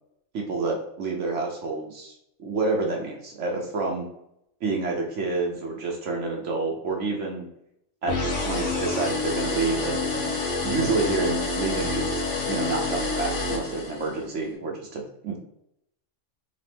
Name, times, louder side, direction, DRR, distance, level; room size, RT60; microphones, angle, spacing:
voice 1, 0.3-4.1 4.6-7.5 8.0-8.1 8.4-10.3 10.6-15.4, right 3 dB, 70° right, 0 dB, 1.1 m, -28 dB
sound 1, 8.1-14.3, left 3 dB, 70° left, 1.4 m, -28 dB
3.9 x 3.6 x 3.4 m, 0.77 s
omnidirectional pair, 1.3 m